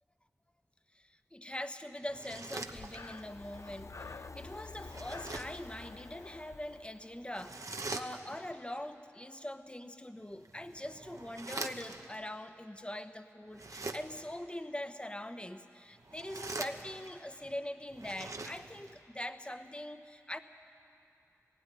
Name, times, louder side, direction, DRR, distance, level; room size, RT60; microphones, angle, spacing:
voice 1, 0.9-20.4, left 1 dB, 20° left, 9 dB, 1.0 m, -43 dB
sound 1, 2.1-3.3 4.8-5.7 7.3-8.5 10.3-12.2 13.5-14.4 16.0-17.2 17.9-19.0, right 3 dB, 70° right, 1.0 m, -43 dB
Breathing, 2.6-7.5, left 3 dB, 60° left, 0.6 m, -49 dB
16.5 x 16.5 x 9.9 m, 2.7 s
cardioid pair, 40°, 6 cm